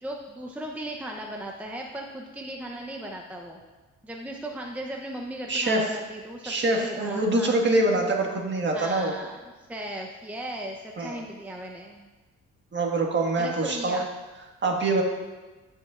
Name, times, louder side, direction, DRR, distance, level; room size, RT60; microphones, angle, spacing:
voice 1, 0.0-3.6 4.0-7.6 8.7-9.4 9.7-12.1 13.4-14.1, right 1 dB, 5° right, 0 dB, 0.7 m, -37 dB
voice 2, 5.5-5.8 6.4-9.1 11.0-11.2 12.7-14.0 14.6-15.0, right 2 dB, 35° right, 1 dB, 1.6 m, -24 dB
15.5 x 5.4 x 2.4 m, 1.2 s
cardioid pair, 90°, 30 cm